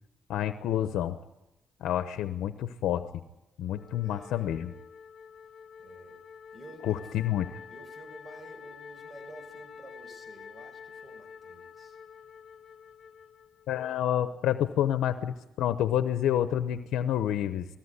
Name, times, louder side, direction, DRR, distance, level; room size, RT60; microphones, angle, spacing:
voice 1, 0.3-1.2 1.8-3.2 3.6-4.7 6.9-7.6 13.7-17.7, left 11 dB, 85° left, 10 dB, 0.9 m, -28 dB
Wind instrument woodwind instrument, 3.7-14.1, left 6 dB, 45° left, 1.7 m, -48 dB
voice 2, 3.9-4.6 5.8-6.2 6.5-7.2 7.7-12.0, right 1 dB, 20° right, 5 dB, 5.9 m, -51 dB
20.0 x 16.5 x 9.8 m, 0.93 s
cardioid pair, 90°, 0 cm